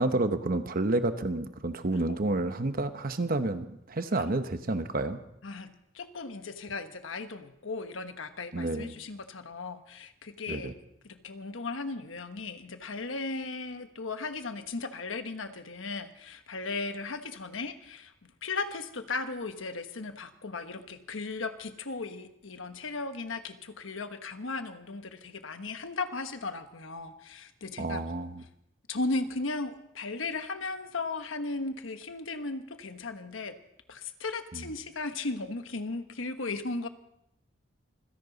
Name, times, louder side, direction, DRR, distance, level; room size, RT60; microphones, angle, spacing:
voice 1, 0.0-5.2 8.5-8.9 10.5-10.7 27.8-28.4 34.5-34.7, right 2 dB, 50° right, 9 dB, 1.0 m, -30 dB
voice 2, 5.4-10.7 11.0-28.0 28.9-33.5 33.9-36.9, left 3 dB, 85° left, 8 dB, 1.2 m, -36 dB
26.5 x 11.0 x 4.0 m, 0.77 s
head